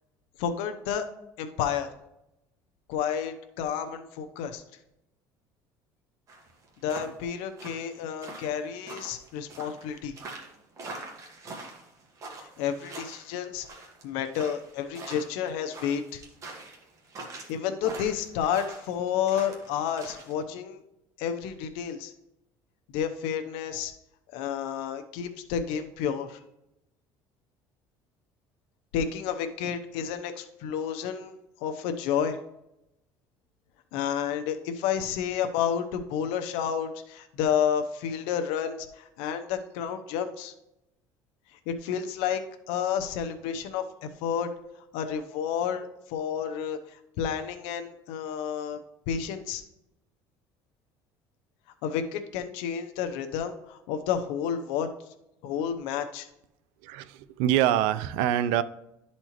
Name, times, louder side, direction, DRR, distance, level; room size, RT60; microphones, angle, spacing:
voice 1, 0.4-1.0 1.4-1.9 2.9-4.6 6.8-10.1 12.6-13.7 14.0-16.2 17.5-20.8 21.2-22.1 22.9-23.9 24.3-26.4 28.9-31.3 31.6-32.4 33.9-40.5 41.7-42.4 42.7-44.5 44.9-46.8 47.2-48.8 49.1-49.6 51.8-54.9 55.4-56.3, left 8 dB, 85° left, 8 dB, 0.7 m, -30 dB
sound 1, 6.3-20.3, right 3 dB, 35° right, 1.5 m, -43 dB
voice 2, 56.8-58.6, right 11 dB, 85° right, 15 dB, 0.5 m, -25 dB
12.0 x 4.3 x 3.0 m, 0.86 s
cardioid pair, 135°, 9 cm